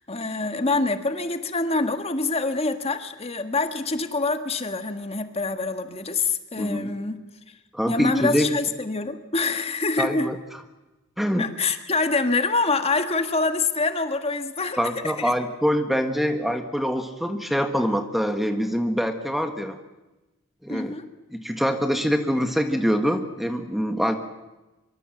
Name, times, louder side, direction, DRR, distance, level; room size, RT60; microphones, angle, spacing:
voice 1, 0.0-7.2 7.9-10.3 11.4-15.3 20.7-21.0, left 3 dB, 30° left, 8 dB, 1.6 m, -26 dB
voice 2, 6.6-6.9 7.7-8.5 10.0-10.4 11.2-11.5 14.8-19.8 20.6-20.9 21.3-24.2, equal, ahead, 7 dB, 1.4 m, -24 dB
24.5 x 23.5 x 7.8 m, 1.1 s
head